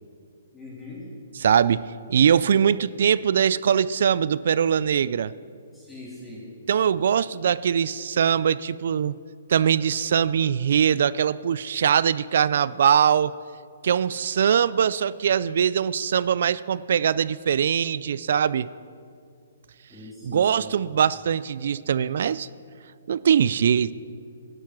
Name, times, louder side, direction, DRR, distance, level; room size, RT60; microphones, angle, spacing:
voice 1, 0.5-1.1 5.7-6.5 19.9-20.7, left 2 dB, 10° left, -6 dB, 3.5 m, -41 dB
voice 2, 1.3-5.3 6.7-9.2 9.5-13.3 13.8-18.7 20.2-22.5 23.1-23.9, right 8 dB, 60° right, 18 dB, 0.3 m, -22 dB
12.0 x 12.0 x 6.1 m, 2.4 s
hypercardioid pair, 155°, 0 cm